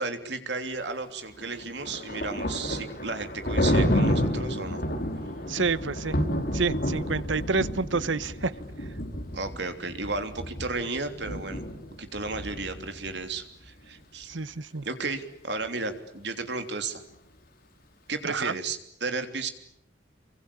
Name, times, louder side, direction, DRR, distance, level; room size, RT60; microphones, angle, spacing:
voice 1, 0.0-4.8 9.3-11.6 12.0-14.3 14.8-17.0 18.1-19.5, right 3 dB, 65° right, 7 dB, 3.3 m, -33 dB
Thunder, 1.4-13.2, equal, 55° left, 5.0 m, -30 dB
voice 2, 5.5-6.2 6.5-8.5 14.3-14.9 18.2-18.6, right 4 dB, 90° right, 16 dB, 1.1 m, -28 dB
28.0 x 24.0 x 8.6 m, 0.73 s
head